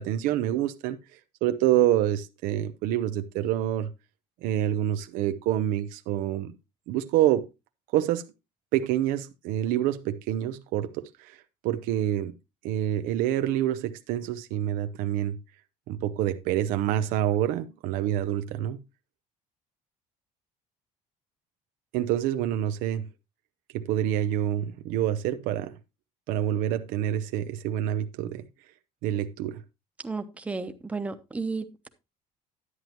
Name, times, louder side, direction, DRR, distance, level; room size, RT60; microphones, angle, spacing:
voice 1, 0.0-3.9 4.4-6.5 6.9-7.5 7.9-8.3 8.7-12.3 12.6-15.4 15.9-18.8 21.9-23.1 23.7-25.7 26.3-28.4 29.0-29.6, right 12 dB, 90° right, 0.7 m, -27 dB
voice 2, 30.0-31.9, right 4 dB, 10° right, 0.8 m, -33 dB
11.0 x 9.2 x 2.9 m
cardioid pair, 170°, 14 cm